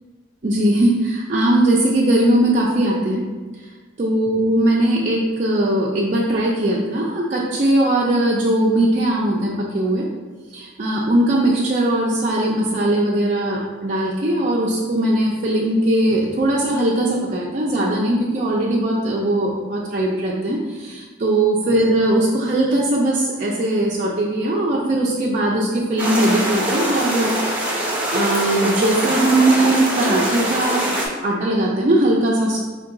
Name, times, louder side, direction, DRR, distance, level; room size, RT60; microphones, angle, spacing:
voice 1, 0.4-3.2 4.0-10.0 10.5-27.3 27.6-30.9 31.2-32.6, right 1 dB, 40° right, -5 dB, 0.4 m, -19 dB
sound 1, 26.0-31.1, right 1 dB, 5° right, 0.7 m, -23 dB
4.6 x 2.2 x 3.7 m, 1.3 s
head